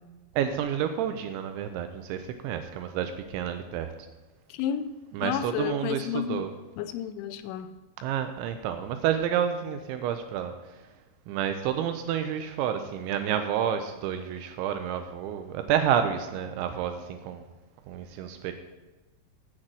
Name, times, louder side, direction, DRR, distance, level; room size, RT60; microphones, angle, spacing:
voice 1, 0.4-3.9 5.1-6.5 8.0-10.5 11.3-17.5 17.9-18.5, right 9 dB, 85° right, 8 dB, 2.8 m, -29 dB
voice 2, 4.5-4.9 5.2-6.5 6.8-7.8, left 9 dB, 85° left, 11 dB, 3.0 m, -31 dB
7.7 x 6.5 x 7.4 m, 1.2 s
omnidirectional pair, 5.7 m